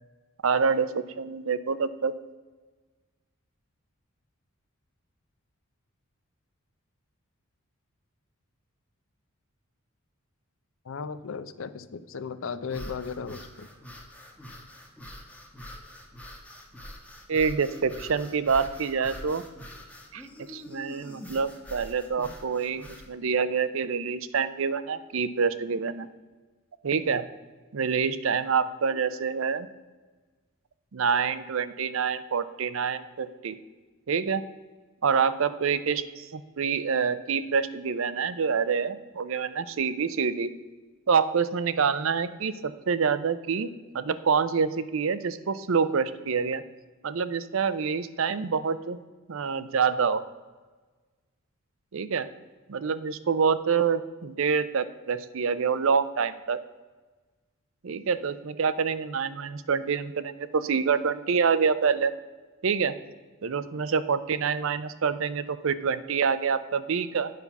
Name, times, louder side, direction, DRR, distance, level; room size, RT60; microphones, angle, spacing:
voice 1, 0.4-2.1 17.3-19.4 20.1-26.1 26.8-27.2 27.7-29.7 30.9-33.6 34.1-34.4 35.0-40.5 41.1-46.6 47.0-49.0 49.3-50.2 51.9-52.3 52.7-56.6 57.8-62.1 62.6-62.9 63.4-67.3, right 6 dB, 65° right, 14 dB, 0.5 m, -26 dB
voice 2, 10.9-13.7, left 5 dB, 65° left, 14 dB, 0.5 m, -36 dB
sound 1, 12.6-23.1, left 1 dB, 5° left, 1.0 m, -44 dB
9.3 x 5.5 x 5.9 m, 1.3 s
head